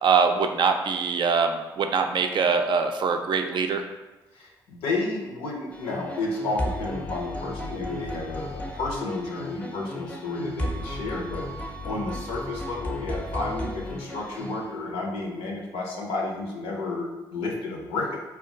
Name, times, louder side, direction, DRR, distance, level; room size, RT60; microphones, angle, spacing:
voice 1, 0.0-3.8, right 5 dB, 55° right, 6 dB, 0.3 m, -23 dB
voice 2, 4.3-18.2, left 2 dB, 85° left, -1 dB, 0.6 m, -31 dB
sound 1, 5.7-14.9, left 1 dB, 15° left, 0.5 m, -35 dB
2.2 x 2.2 x 3.7 m, 1.1 s
supercardioid pair, 50°, 9 cm